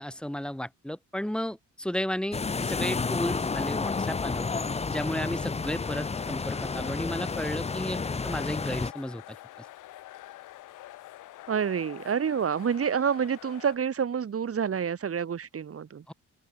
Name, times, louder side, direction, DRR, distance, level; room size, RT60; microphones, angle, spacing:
voice 1, 0.0-4.5 4.9-8.0 8.2-9.2 16.1-16.2, equal, 5° left, 6.6 m, -33 dB
sound 1, 2.3-8.9, left 4 dB, 20° left, 0.9 m, -31 dB
sound 2, 5.8-13.8, left 15 dB, 90° left, 7.9 m, -47 dB
voice 2, 11.5-16.0, right 7 dB, 50° right, 5.6 m, -28 dB
open air
cardioid pair, 90°, 30 cm